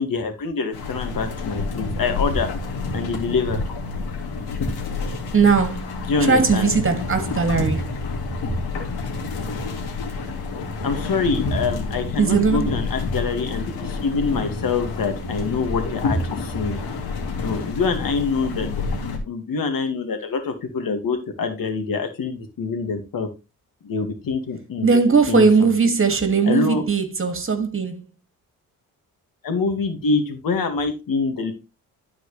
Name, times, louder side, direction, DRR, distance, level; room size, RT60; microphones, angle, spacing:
voice 1, 0.0-2.5 2.9-3.6 6.1-6.7 10.8-16.8 17.4-23.3 23.8-25.0 25.3-25.7 26.4-26.8 29.4-31.5, left 4 dB, 60° left, 2.1 m, -25 dB
sound 1, 0.7-19.2, left 3 dB, 80° left, 2.2 m, -28 dB
voice 2, 5.3-5.9 6.2-7.8 12.2-12.7 24.8-28.0, right 5 dB, 35° right, 2.3 m, -19 dB
12.0 x 4.8 x 3.3 m
supercardioid pair, 65°, 37 cm